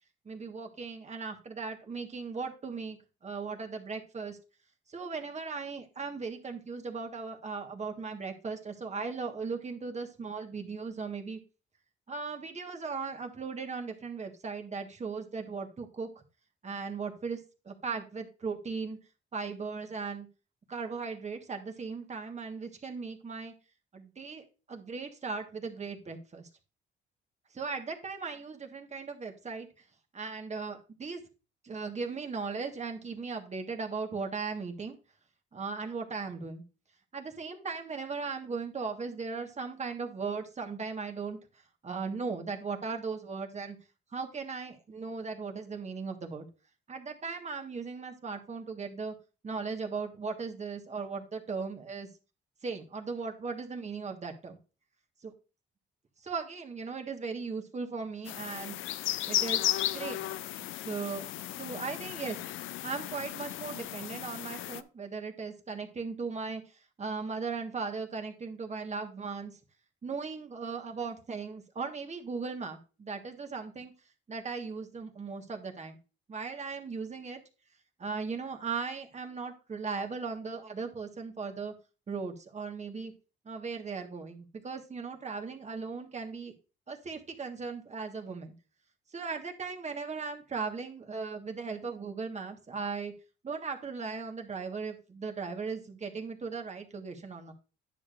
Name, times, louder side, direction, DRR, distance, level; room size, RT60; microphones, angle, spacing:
voice 1, 0.2-3.0 3.2-4.4 4.9-11.4 12.1-16.2 16.6-17.4 17.6-19.0 19.3-20.3 20.7-23.5 23.9-26.5 27.5-29.7 30.1-31.2 31.6-35.0 35.5-36.6 37.1-41.4 41.8-43.8 44.1-46.4 46.9-49.1 49.4-52.1 52.6-54.6 55.2-55.3 56.2-58.8 59.2-60.2 60.6-61.3 61.5-69.6 70.0-73.9 74.3-75.9 76.3-77.4 78.0-81.7 82.1-83.1 83.4-86.5 86.9-88.5 89.1-93.1 93.4-97.5, right 4 dB, 35° right, 4 dB, 1.4 m, -37 dB
sound 1, 58.3-64.8, left 14 dB, 85° left, 0.5 m, -35 dB
9.7 x 6.6 x 2.5 m, 0.33 s
cardioid pair, 90°, 20 cm